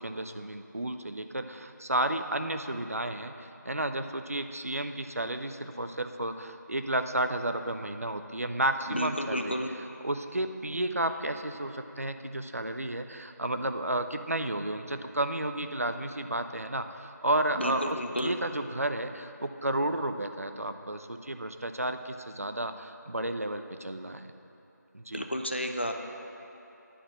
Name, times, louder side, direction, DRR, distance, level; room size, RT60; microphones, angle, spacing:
voice 1, 0.0-9.6 10.0-24.2 24.9-25.3, right 1 dB, 50° right, 8 dB, 0.5 m, -32 dB
voice 2, 8.9-9.7 17.6-18.3 25.1-25.9, equal, 35° left, 4 dB, 0.5 m, -31 dB
10.0 x 4.2 x 7.4 m, 2.9 s
figure-of-eight pair, 180°, 10 cm